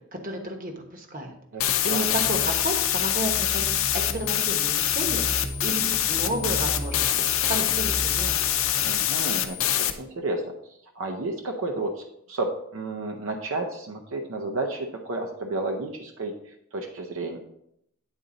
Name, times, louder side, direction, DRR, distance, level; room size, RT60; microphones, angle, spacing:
voice 1, 0.2-1.3 1.8-7.0 7.5-8.5, right 1 dB, 40° right, 4 dB, 1.1 m, -32 dB
voice 2, 1.5-2.1 8.8-10.4 11.0-17.4, right 2 dB, 70° right, 3 dB, 0.7 m, -32 dB
sound 1, 1.6-9.9, left 11 dB, 75° left, 0.6 m, -25 dB
sound 2, 1.7-8.9, equal, 15° left, 0.8 m, -37 dB
9.1 x 4.0 x 3.8 m, 0.77 s
head